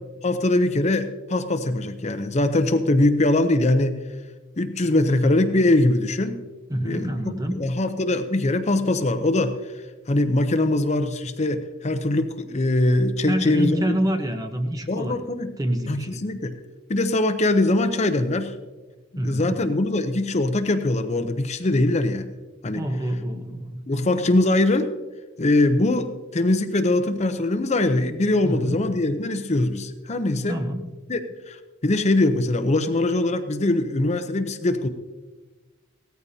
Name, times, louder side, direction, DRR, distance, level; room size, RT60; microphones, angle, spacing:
voice 1, 0.2-4.0 4.6-6.4 6.8-7.1 7.6-9.7 10.1-13.8 14.9-15.5 15.9-16.6 16.9-18.5 19.2-22.3 22.6-22.8 23.9-24.9 25.4-30.6 31.1-31.6 31.8-34.9, left 2 dB, 35° left, 8 dB, 0.7 m, -22 dB
voice 2, 6.7-7.6 13.3-15.2 15.6-16.2 19.2-19.6 22.7-23.8 28.4-28.8 30.5-30.8, equal, 20° right, 5 dB, 1.0 m, -26 dB
17.5 x 14.0 x 2.8 m, 1.2 s
head